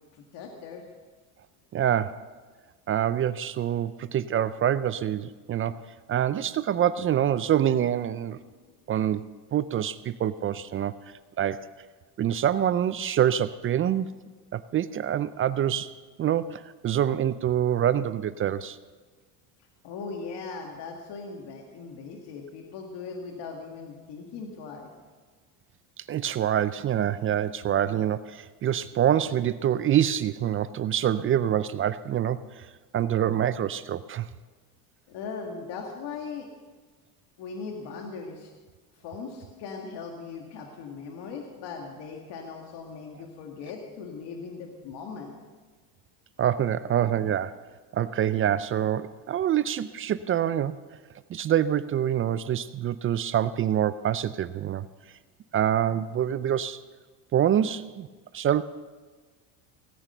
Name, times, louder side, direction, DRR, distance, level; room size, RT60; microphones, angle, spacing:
voice 1, 0.1-0.9 19.8-24.9 35.1-36.5 37.4-38.5 39.0-45.3, left 5 dB, 60° left, 2 dB, 2.0 m, -39 dB
voice 2, 1.7-2.3 2.9-8.4 8.9-11.0 11.4-11.6 12.2-14.1 14.5-18.8 26.0-32.7 32.9-34.3 46.4-47.6 47.9-50.8 51.3-54.9 55.5-56.8 57.3-58.1 58.3-58.6, right 10 dB, 30° right, 16 dB, 0.4 m, -26 dB
17.5 x 8.9 x 6.7 m, 1.4 s
supercardioid pair, 100°, 46 cm